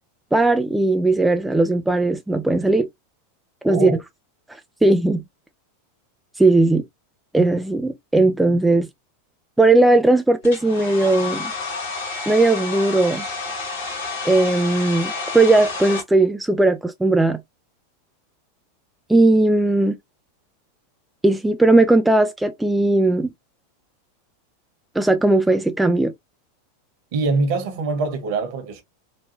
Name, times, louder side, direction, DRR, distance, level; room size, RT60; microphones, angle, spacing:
voice 1, 0.3-2.9 3.6-3.9 4.8-5.2 6.4-6.8 7.3-8.9 9.6-11.5 12.3-13.2 14.2-17.4 19.1-20.0 21.2-23.3 25.0-26.1, right 2 dB, 5° right, 0.4 m, -17 dB
voice 2, 3.7-4.0 27.1-28.8, right 3 dB, 50° right, 1.3 m, -23 dB
Domestic sounds home sounds, 10.4-16.0, left 4 dB, 60° left, 2.2 m, -30 dB
4.3 x 2.6 x 2.7 m
figure-of-eight pair, 90°, 0 cm